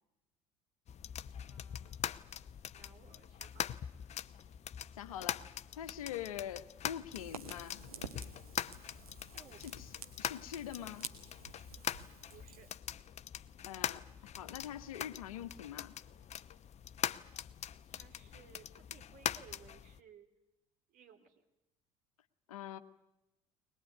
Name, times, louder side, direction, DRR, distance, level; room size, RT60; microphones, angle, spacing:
sound 1, 0.9-20.0, left 9 dB, 40° left, 0.8 m, -43 dB
voice 1, 1.4-2.0 2.7-3.7 9.2-9.8 12.3-12.7 17.9-20.3 20.9-21.4, right 7 dB, 50° right, 4 dB, 3.4 m, -60 dB
voice 2, 5.0-5.4 5.8-7.8 9.6-9.9 10.2-11.1 13.7-15.9 22.5-22.8, left 10 dB, 75° left, 10 dB, 1.2 m, -44 dB
Fire, 7.1-12.8, right 5 dB, 85° right, 1.5 m, -51 dB
21.5 x 21.0 x 9.3 m, 0.90 s
figure-of-eight pair, 60°, 18 cm